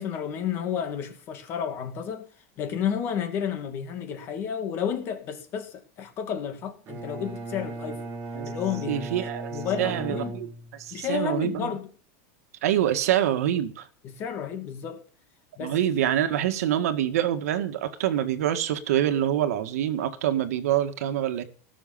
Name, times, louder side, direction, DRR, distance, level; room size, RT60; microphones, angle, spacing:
voice 1, 0.0-2.2 2.6-8.0 8.5-10.4 10.9-11.9 14.0-15.0 15.6-15.8, left 8 dB, 30° left, 2.3 m, -31 dB
Bowed string instrument, 6.9-11.1, right 3 dB, 25° right, 2.5 m, -37 dB
voice 2, 8.9-9.5 9.8-10.5 10.8-11.7 12.6-13.8 15.6-21.4, right 11 dB, 80° right, 1.9 m, -25 dB
18.5 x 7.1 x 7.1 m
supercardioid pair, 175°, 8 cm